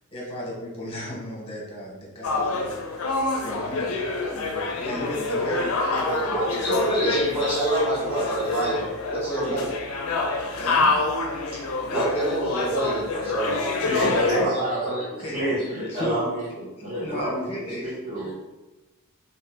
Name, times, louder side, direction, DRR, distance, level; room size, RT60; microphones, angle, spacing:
voice 1, 0.1-2.7 3.4-4.0 4.3-7.2 9.4-9.6 10.6-11.0 15.2-15.4 15.9-16.2 16.8-17.9, equal, 25° left, -4 dB, 0.8 m, -35 dB
sound 1, 2.2-14.5, left 3 dB, 70° left, 0.4 m, -27 dB
voice 2, 6.1-9.7 11.9-13.6 14.0-15.5, right 1 dB, 10° right, -12 dB, 1.0 m, -26 dB
voice 3, 13.7-14.8 15.3-18.3, equal, 40° right, -9 dB, 1.3 m, -29 dB
2.5 x 2.5 x 3.3 m, 1.1 s
head